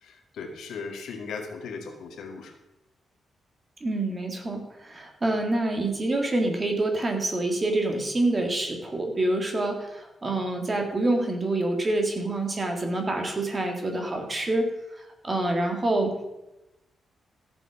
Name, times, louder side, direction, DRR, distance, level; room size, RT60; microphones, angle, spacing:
voice 1, 0.0-2.5, left 4 dB, 85° left, 3 dB, 2.2 m, -37 dB
voice 2, 3.8-16.2, right 2 dB, 20° right, 4 dB, 1.9 m, -27 dB
14.0 x 7.9 x 6.0 m, 0.94 s
wide cardioid pair, 170°, 0 cm